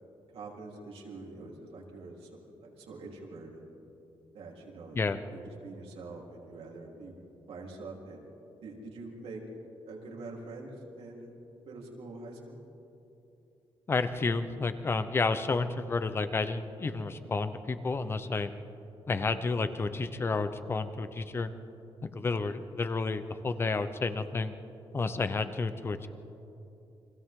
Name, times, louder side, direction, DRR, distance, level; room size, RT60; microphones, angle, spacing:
voice 1, 0.3-2.3 2.6-3.6 4.3-7.1 7.5-8.2 8.6-9.4 9.9-10.7 11.0-11.3 11.7-12.6, right 3 dB, 85° right, -2 dB, 3.8 m, -45 dB
voice 2, 13.9-18.5 19.1-21.5 22.0-24.5 24.9-26.1, left 3 dB, 25° left, 10 dB, 0.8 m, -31 dB
30.0 x 24.5 x 3.8 m, 2.9 s
wide cardioid pair, 175°, 10 cm